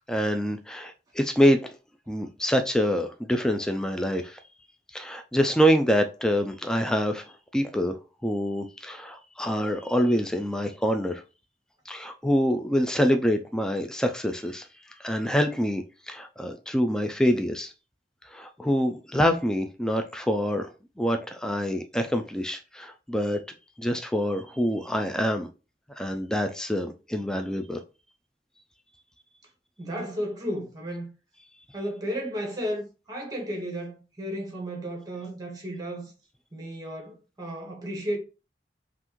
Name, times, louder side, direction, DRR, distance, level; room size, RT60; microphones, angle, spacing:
voice 1, 0.1-1.7 2.1-4.4 4.9-8.0 8.2-11.2 11.9-14.7 15.0-17.7 18.2-23.4 23.8-25.5 26.0-27.8, equal, 5° left, 0.3 m, -26 dB
voice 2, 29.8-31.1 31.7-36.1 36.5-38.2, equal, 20° right, 1.3 m, -33 dB
5.6 x 2.5 x 3.0 m
head